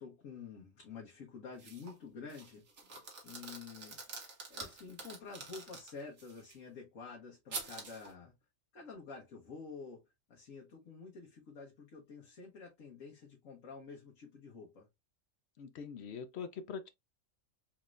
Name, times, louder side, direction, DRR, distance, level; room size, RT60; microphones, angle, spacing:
voice 1, 0.0-2.6 3.2-4.0 4.5-8.3 8.7-10.0 10.3-14.9, left 5 dB, 85° left, 1.4 m, -49 dB
sound 1, 1.6-2.0 2.3-6.5 7.5-8.1, right 4 dB, 90° right, 1.6 m, -47 dB
voice 2, 15.6-16.9, left 6 dB, 65° left, 0.8 m, -43 dB
4.3 x 3.1 x 2.4 m
omnidirectional pair, 1.3 m